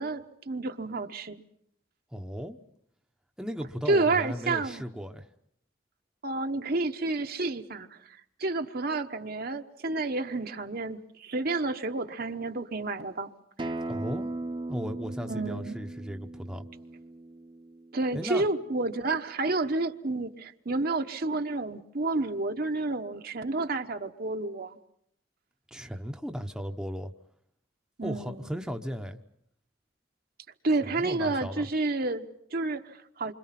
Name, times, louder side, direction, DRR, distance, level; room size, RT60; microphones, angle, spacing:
voice 1, 0.0-1.4 3.9-4.8 6.2-13.3 13.6-13.7 15.3-15.7 17.9-24.8 28.0-28.5 30.6-33.3, right 3 dB, 50° right, 1.1 m, -30 dB
voice 2, 2.1-2.6 3.4-5.3 13.9-14.3 14.7-16.7 18.1-18.5 25.7-27.1 28.0-29.2 30.8-31.7, equal, 5° right, 0.9 m, -36 dB
Acoustic guitar, 13.6-18.8, right 2 dB, 25° right, 0.9 m, -38 dB
28.0 x 25.5 x 5.9 m
head